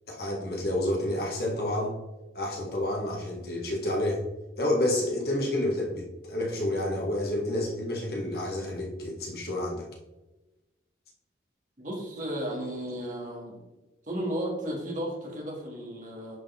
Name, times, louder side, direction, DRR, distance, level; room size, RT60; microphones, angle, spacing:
voice 1, 0.1-2.0 2.3-4.2 4.6-9.9, left 1 dB, 55° left, -1 dB, 1.9 m, -29 dB
voice 2, 11.8-13.6 14.1-16.4, equal, 45° right, -2 dB, 2.2 m, -34 dB
10.5 x 5.0 x 3.6 m, 1.0 s
head